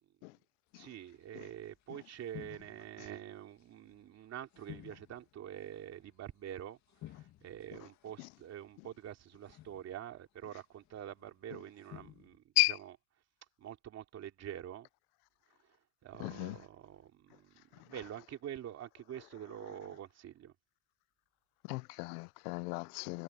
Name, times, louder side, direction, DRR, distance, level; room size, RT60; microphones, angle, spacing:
voice 1, 0.8-12.9 13.6-14.9 15.6-20.5, right 10 dB, 35° right, 2.9 m, -46 dB
sound 1, 1.0-1.2 1.4-1.7 2.2-3.1 3.6-4.2 4.5-6.4 6.9-8.4 8.7-9.0 9.4-10.1 10.8-11.3 11.7-12.4, left 13 dB, 40° left, 2.0 m, -54 dB
voice 2, 16.2-16.6 21.7-23.2, left 26 dB, 80° left, 0.6 m, -33 dB
cardioid pair, 145°, 44 cm